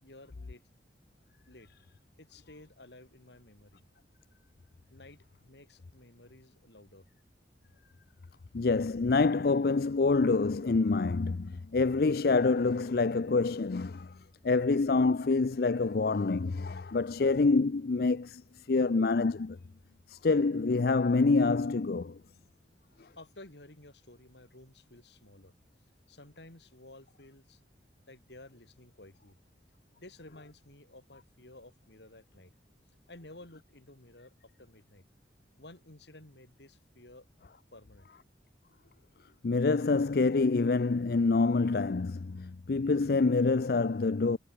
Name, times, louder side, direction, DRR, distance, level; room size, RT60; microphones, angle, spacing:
voice 1, 0.0-0.6 1.5-1.7 2.2-3.8 4.9-7.1 23.2-25.5 26.1-27.6 28.1-29.4 30.0-32.5 33.1-35.0 35.6-37.3 37.7-38.1, left 2 dB, 70° left, 4.1 m, -53 dB
voice 2, 8.5-14.1 14.4-18.4 18.7-19.6 20.1-22.2 39.4-44.4, left 3 dB, 55° left, 0.5 m, -26 dB
head